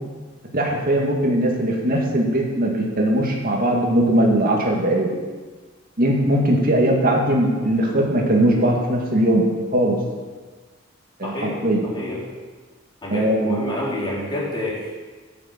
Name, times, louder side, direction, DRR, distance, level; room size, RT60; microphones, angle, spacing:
voice 1, 0.5-5.1 6.0-9.4 9.7-10.0 11.2-11.9 13.1-13.7, right 1 dB, 45° right, -1 dB, 2.1 m, -20 dB
voice 2, 11.2-12.2 13.0-15.0, left 1 dB, 25° left, -6 dB, 3.8 m, -29 dB
10.5 x 6.7 x 7.8 m, 1.4 s
head